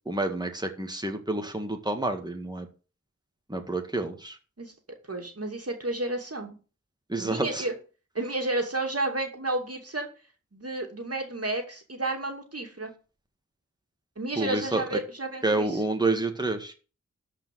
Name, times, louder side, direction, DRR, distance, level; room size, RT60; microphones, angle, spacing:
voice 1, 0.1-2.7 3.5-4.4 7.1-7.6 14.4-15.0 15.4-16.7, right 2 dB, 15° right, 5 dB, 2.0 m, -29 dB
voice 2, 5.1-6.6 7.2-7.7 8.1-10.1 10.5-12.9 14.2-15.8, right 2 dB, 50° right, 3 dB, 2.6 m, -31 dB
13.0 x 5.1 x 7.6 m, 0.36 s
wide cardioid pair, 55°, 31 cm